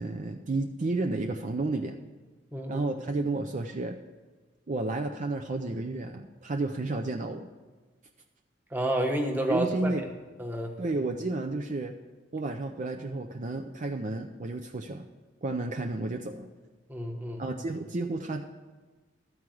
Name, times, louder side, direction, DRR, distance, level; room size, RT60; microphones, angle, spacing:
voice 1, 0.0-2.0 2.7-4.0 4.7-7.5 9.5-10.1 10.8-11.9 12.3-15.1 15.4-16.5 17.4-18.5, right 2 dB, 40° right, 4 dB, 0.5 m, -31 dB
voice 2, 2.5-2.9 8.7-9.9 10.4-10.7 16.9-17.4, right 1 dB, 10° right, 1 dB, 1.1 m, -30 dB
13.0 x 4.7 x 7.7 m, 1.3 s
head